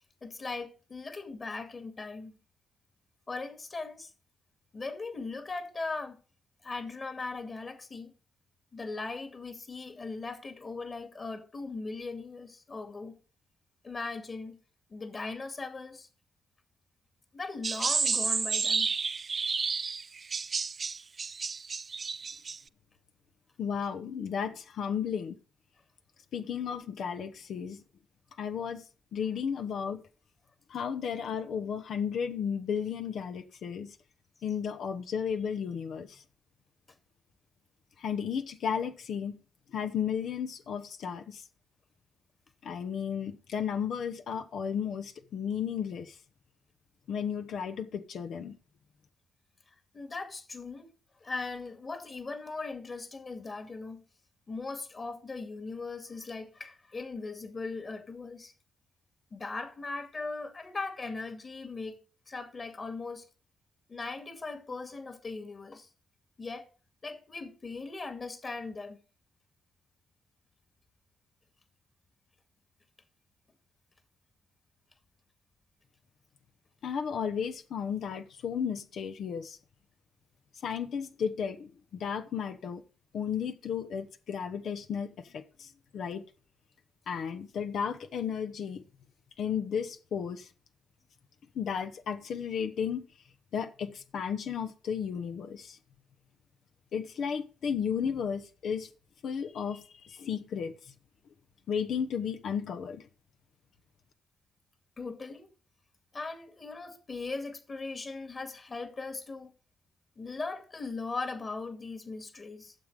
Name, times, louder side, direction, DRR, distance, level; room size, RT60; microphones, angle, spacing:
voice 1, 0.2-2.4 3.3-4.1 4.7-6.2 6.6-8.1 8.7-13.1 13.8-14.6 14.9-16.1 17.3-18.9 49.9-50.9 51.2-54.0 54.5-58.5 59.3-62.0 62.3-63.3 63.9-65.9 66.4-66.7 67.0-69.0 105.0-105.5 106.1-109.5 110.2-112.7, left 3 dB, 40° left, 2.3 m, -39 dB
sound 1, 17.6-22.6, right 5 dB, 45° right, 0.5 m, -31 dB
voice 2, 23.6-25.4 26.3-27.8 28.4-28.8 29.1-30.0 30.7-33.9 34.4-36.2 38.0-39.4 39.7-41.4 42.6-46.1 47.1-48.5 76.8-79.6 80.6-82.8 83.1-86.2 87.1-88.8 89.4-90.5 91.5-93.0 93.5-95.8 96.9-98.9 99.2-100.7 101.7-103.1, left 7 dB, 65° left, 1.1 m, -34 dB
12.0 x 7.4 x 4.9 m
hypercardioid pair, 45°, 0 cm